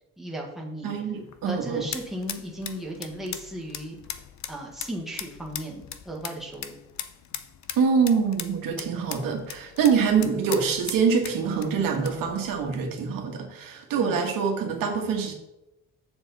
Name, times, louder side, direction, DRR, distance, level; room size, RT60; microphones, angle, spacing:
voice 1, 0.2-0.9 1.4-4.0 4.5-6.8 14.0-14.2, right 1 dB, ahead, -2 dB, 1.6 m, -35 dB
voice 2, 0.8-1.8 7.8-15.3, right 6 dB, 85° right, 2 dB, 1.6 m, -25 dB
sound 1, 1.1-12.8, left 9 dB, 55° left, 0.7 m, -40 dB
7.3 x 7.0 x 4.1 m, 0.91 s
cardioid pair, 135°, 33 cm